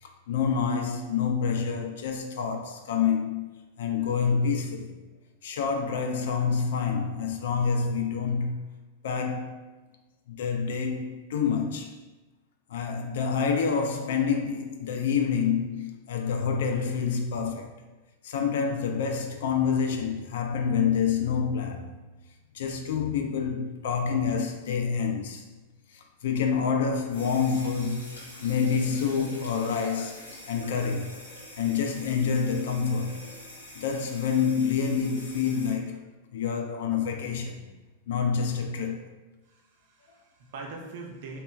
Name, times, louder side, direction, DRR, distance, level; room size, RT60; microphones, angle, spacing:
voice 1, 0.0-4.9 5.4-8.6 9.0-9.6 10.3-12.0 12.7-17.8 18.2-21.9 22.5-25.5 25.9-31.2 31.6-33.2 33.7-37.6 38.1-39.0, left 6 dB, 65° left, 0.3 m, -27 dB
sound 1, 27.1-35.7, left 1 dB, 85° left, 0.7 m, -45 dB
voice 2, 39.5-41.4, right 3 dB, 60° right, 0.5 m, -42 dB
2.9 x 2.1 x 2.2 m
figure-of-eight pair, 95°, 0 cm